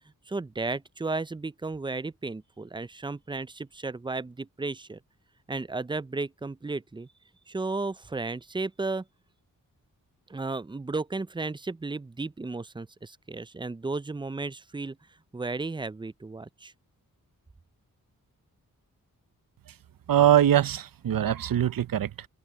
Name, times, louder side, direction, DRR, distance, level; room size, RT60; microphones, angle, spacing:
voice 1, 0.3-5.0 5.5-7.1 7.5-9.0 10.3-15.0 15.3-16.7, right 3 dB, 15° right, 0.5 m, -34 dB
voice 2, 20.1-22.3, right 11 dB, 75° right, 0.8 m, -22 dB
open air
cardioid pair, 50°, 35 cm